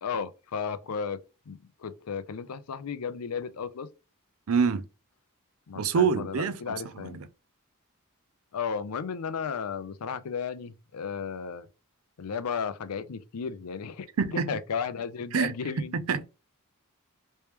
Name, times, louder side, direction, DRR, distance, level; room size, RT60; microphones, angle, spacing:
voice 1, 0.0-1.2 1.5-3.9 5.7-7.3 8.5-11.7 12.2-14.1 14.5-16.0, left 6 dB, 85° left, 0.5 m, -34 dB
voice 2, 4.5-4.8 5.8-7.3 14.2-14.5 15.3-15.5 15.9-16.2, right 6 dB, 65° right, 0.5 m, -26 dB
3.4 x 3.2 x 2.9 m
head